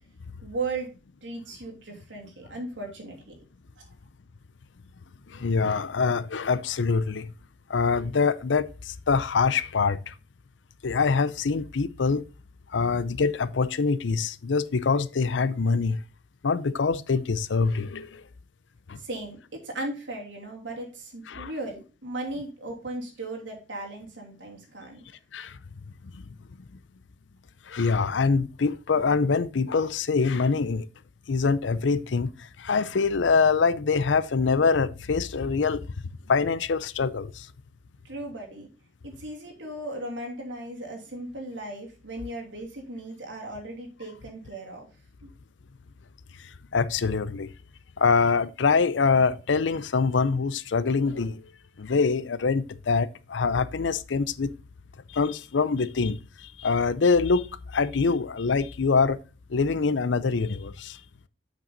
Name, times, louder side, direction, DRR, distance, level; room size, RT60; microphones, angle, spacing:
voice 1, 0.4-0.9 1.2-3.3 19.0-25.0 38.0-38.7 39.0-44.9 45.2-45.3, right 2 dB, 85° right, 2.9 m, -37 dB
voice 2, 5.3-7.3 7.7-10.1 10.8-12.2 12.7-16.0 16.4-18.2 18.9-19.0 21.3-21.5 25.3-25.6 26.1-26.2 27.7-30.9 31.3-35.9 36.3-37.5 46.4-47.5 48.0-51.4 51.8-54.5 55.1-59.2 59.5-61.0, left 4 dB, 80° left, 0.6 m, -24 dB
7.7 x 6.0 x 3.9 m
head